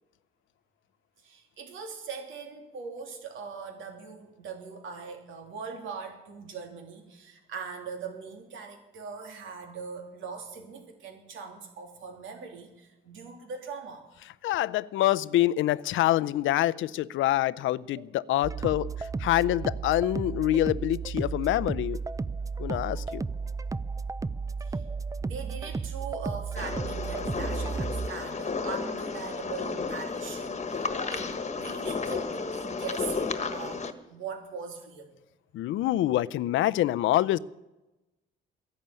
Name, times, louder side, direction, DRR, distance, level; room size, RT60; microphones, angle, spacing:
voice 1, 1.2-14.0 24.6-24.8 25.2-35.1, right 5 dB, 80° right, 4 dB, 3.3 m, -41 dB
voice 2, 14.4-18.9 19.2-22.0 22.6-23.2 35.5-37.4, left 14 dB, 80° left, 18 dB, 0.5 m, -26 dB
sound 1, 18.4-28.1, right 4 dB, 15° right, 0.5 m, -33 dB
sound 2, 26.6-33.9, left 4 dB, 35° left, 1.4 m, -33 dB
13.5 x 11.0 x 9.0 m, 1.0 s
cardioid pair, 90°, 20 cm